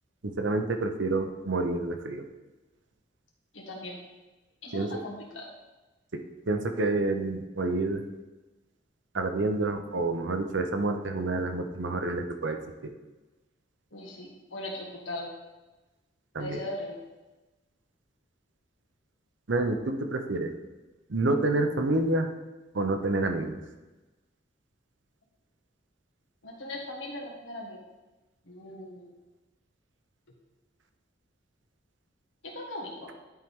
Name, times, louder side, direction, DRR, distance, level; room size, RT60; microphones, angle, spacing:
voice 1, 0.2-2.3 4.7-5.0 6.1-6.2 6.5-8.0 9.1-12.6 12.8-12.9 16.3-16.6 19.5-20.5 21.1-22.3 22.7-23.6, right 2 dB, 75° right, 6 dB, 0.8 m, -28 dB
voice 2, 3.5-4.0 4.6-5.5 13.9-15.3 16.4-17.0 26.4-27.8 28.5-29.1 32.4-33.1, left 1 dB, 80° left, -1 dB, 1.7 m, -39 dB
10.5 x 4.6 x 3.6 m, 1.1 s
head